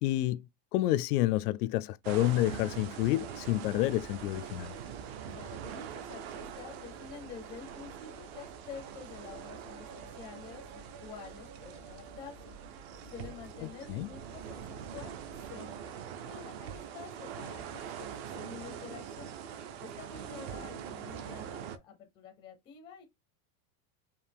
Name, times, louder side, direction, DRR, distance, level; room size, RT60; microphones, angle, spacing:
voice 1, 0.0-0.5 0.7-4.7 13.9-14.1, left 16 dB, 80° left, 0.5 m, -29 dB
sound 1, 2.0-21.8, right 8 dB, 45° right, 0.5 m, -43 dB
sound 2, 3.6-15.5, right 2 dB, 65° right, 1.8 m, -55 dB
voice 2, 5.3-12.5 13.1-15.9 16.3-19.3 19.8-23.0, left 7 dB, 10° left, 0.4 m, -49 dB
4.9 x 2.7 x 3.4 m
supercardioid pair, 175°, 44 cm